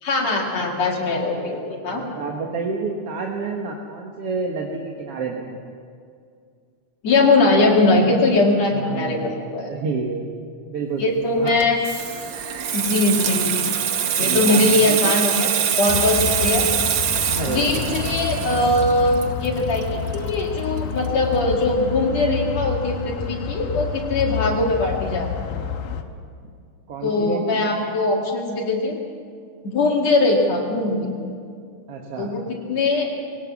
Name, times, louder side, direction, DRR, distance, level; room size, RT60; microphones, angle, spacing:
voice 1, 0.0-2.0 7.0-9.7 11.0-11.8 12.7-13.7 14.2-15.5 15.8-16.7 17.5-25.6 27.0-29.0 29.6-31.1 32.2-32.4 32.7-33.1, left 2 dB, 60° left, -1 dB, 3.2 m, -21 dB
voice 2, 1.9-5.7 8.7-9.4 9.7-11.6 14.2-15.1 17.3-17.8 26.9-27.6 31.9-32.3, right 4 dB, 55° right, 0 dB, 2.2 m, -29 dB
Water tap faucet / Sink (filling or washing), 11.5-20.8 21.1-21.3, right 8 dB, 75° right, 1.0 m, -24 dB
sound 1, 15.9-26.0, left 7 dB, 80° left, 2.5 m, -29 dB
21.5 x 18.0 x 7.2 m, 2.3 s
omnidirectional pair, 3.5 m